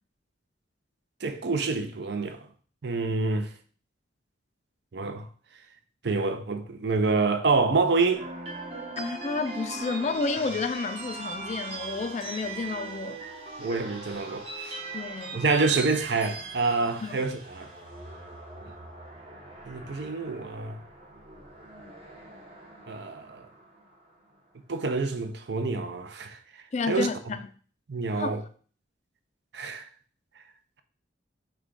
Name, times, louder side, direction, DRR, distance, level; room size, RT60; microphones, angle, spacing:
voice 1, 1.2-2.5 2.8-3.5 4.9-5.3 6.0-8.3 13.6-14.8 15.3-17.7 19.7-20.8 22.9-23.5 24.7-26.4 26.9-27.1 27.9-28.4 29.5-29.9, right 3 dB, 65° right, 0.6 m, -27 dB
sound 1, 8.1-24.3, right 3 dB, 30° right, 1.0 m, -40 dB
voice 2, 9.0-13.2 14.9-15.4 17.0-17.1 26.7-27.4 28.2-28.4, left 4 dB, 40° left, 0.3 m, -31 dB
6.0 x 2.3 x 3.9 m
head